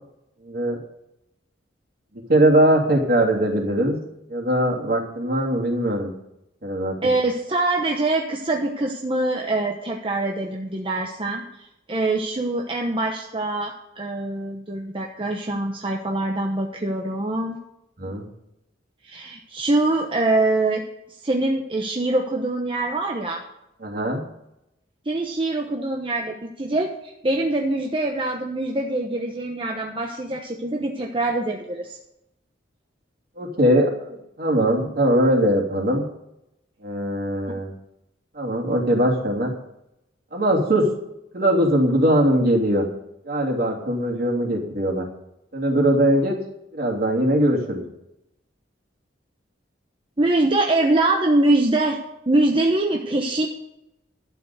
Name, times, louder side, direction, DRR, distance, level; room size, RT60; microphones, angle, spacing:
voice 1, 0.4-0.8 2.3-4.0 4.3-6.1 6.6-6.9 18.0-18.3 23.8-24.2 33.4-36.0 36.8-37.7 38.3-39.5 40.3-40.9 41.3-42.8 43.2-45.1 45.5-46.4 46.7-47.8, right 1 dB, 55° right, -1 dB, 3.2 m, -21 dB
voice 2, 7.0-17.6 19.0-20.8 21.2-23.4 25.1-32.0 37.5-37.6 50.2-52.0 52.3-53.5, right 2 dB, 30° right, 1 dB, 1.0 m, -24 dB
12.0 x 6.9 x 8.2 m, 0.84 s
head